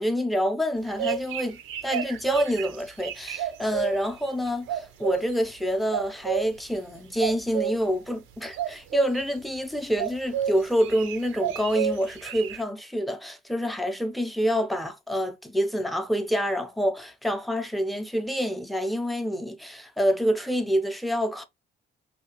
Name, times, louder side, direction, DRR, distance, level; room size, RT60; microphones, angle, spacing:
voice 1, 0.0-21.5, equal, ahead, 0.5 m, -27 dB
sound 1, 0.7-3.9 4.7-5.3 5.9-6.5 7.2-7.7 8.5-9.2 10.0-10.5 10.8-12.6, right 9 dB, 85° right, 0.6 m, -30 dB
2.8 x 2.8 x 2.8 m
cardioid pair, 90°, 20 cm